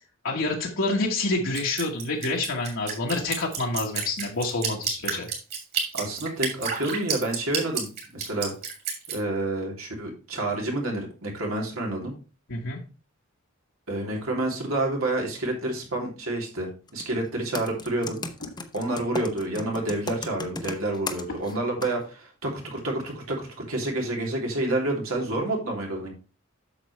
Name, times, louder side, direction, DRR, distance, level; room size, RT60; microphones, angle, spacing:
voice 1, 0.2-5.3 12.5-12.8, left 2 dB, 65° left, -2 dB, 1.4 m, -27 dB
Drip, 1.5-9.2, right 6 dB, 50° right, 3.0 m, -30 dB
voice 2, 5.9-8.5 9.1-12.1 13.9-18.2 18.7-26.1, right 2 dB, 85° right, 0 dB, 2.8 m, -29 dB
Computer keyboard, 16.9-17.1 17.5-21.5 21.8-21.9, left 3 dB, 20° left, 0.8 m, -35 dB
8.5 x 6.8 x 3.2 m, 0.34 s
head